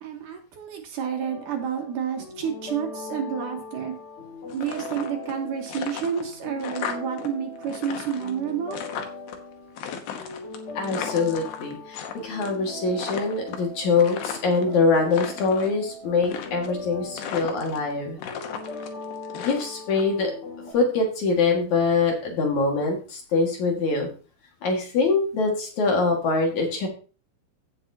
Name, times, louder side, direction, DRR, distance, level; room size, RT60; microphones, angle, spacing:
voice 1, 0.0-3.9 4.5-8.8, right 7 dB, 65° right, 3 dB, 2.5 m, -30 dB
sound 1, 1.2-20.7, left 2 dB, 40° left, 3.0 m, -40 dB
sound 2, 4.5-5.4 5.7-7.3 7.6-9.4 9.8-12.1 12.4-12.7 13.0-14.6 15.0-15.7 16.2-16.9 17.2-17.9 18.2-20.0, left 8 dB, 85° left, 3.1 m, -35 dB
voice 2, 10.7-18.2 19.3-20.3 20.7-24.1 24.6-26.9, left 4 dB, 55° left, 1 dB, 2.9 m, -24 dB
16.0 x 6.8 x 2.8 m, 0.37 s
omnidirectional pair, 4.3 m